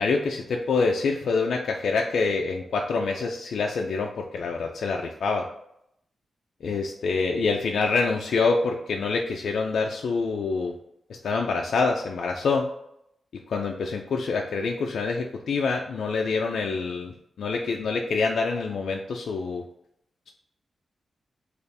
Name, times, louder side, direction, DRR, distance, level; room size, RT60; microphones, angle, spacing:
voice 1, 0.0-5.5 6.6-10.7 11.2-12.7 13.5-19.6, left 4 dB, 80° left, 1 dB, 0.3 m, -26 dB
3.3 x 2.4 x 4.0 m, 0.76 s
wide cardioid pair, 170°, 0 cm